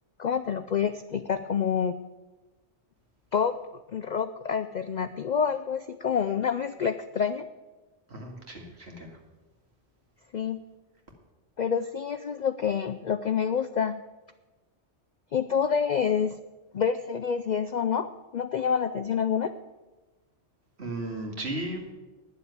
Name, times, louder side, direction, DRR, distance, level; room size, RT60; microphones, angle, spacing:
voice 1, 0.2-2.0 3.3-3.6 3.9-7.5 10.3-10.6 11.6-14.0 15.3-16.4 16.7-19.5, left 7 dB, 60° left, 10 dB, 0.4 m, -27 dB
voice 2, 8.1-9.1 20.8-21.9, right 1 dB, 65° right, 1 dB, 2.3 m, -35 dB
10.0 x 7.2 x 9.4 m, 1.2 s
omnidirectional pair, 1.2 m